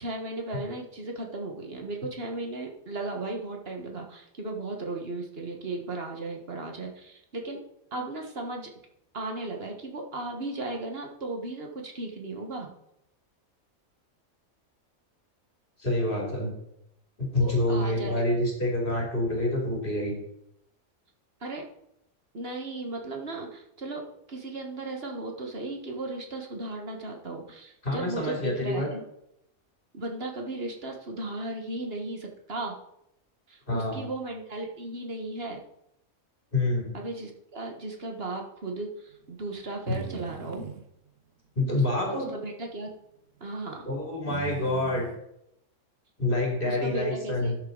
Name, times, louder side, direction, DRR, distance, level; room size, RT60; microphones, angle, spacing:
voice 1, 0.0-7.6 7.9-8.7 9.1-12.7 17.4-18.3 21.4-21.6 22.3-24.0 24.3-29.1 29.9-32.8 33.5-35.6 36.9-40.7 41.7-42.9 43.4-43.9 46.6-47.6, right 2 dB, 45° right, 2 dB, 1.7 m, -36 dB
voice 2, 15.8-16.5 17.2-20.1 27.8-28.9 33.7-34.0 36.5-36.9 39.9-40.0 41.5-42.3 43.9-45.1 46.2-47.6, left 1 dB, 40° left, -1 dB, 3.0 m, -27 dB
sound 1, 39.6-40.9 42.2-42.5 42.9-43.0 44.3-45.2, right 7 dB, 60° right, 1.2 m, -38 dB
12.0 x 7.1 x 3.9 m, 0.80 s
omnidirectional pair, 1.5 m